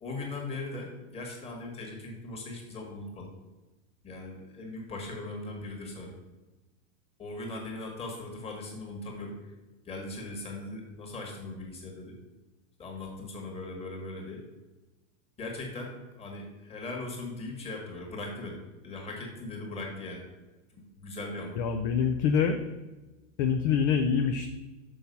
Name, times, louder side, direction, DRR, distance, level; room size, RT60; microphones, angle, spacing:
voice 1, 0.0-3.3 4.0-6.2 7.2-9.5 9.9-12.1 12.8-14.4 15.4-20.2 20.7-21.6, left 2 dB, 15° left, 0 dB, 1.7 m, -39 dB
voice 2, 21.6-22.6 23.4-24.5, left 6 dB, 35° left, 6 dB, 0.5 m, -25 dB
6.4 x 5.8 x 5.3 m, 1.1 s
supercardioid pair, 150°, 39 cm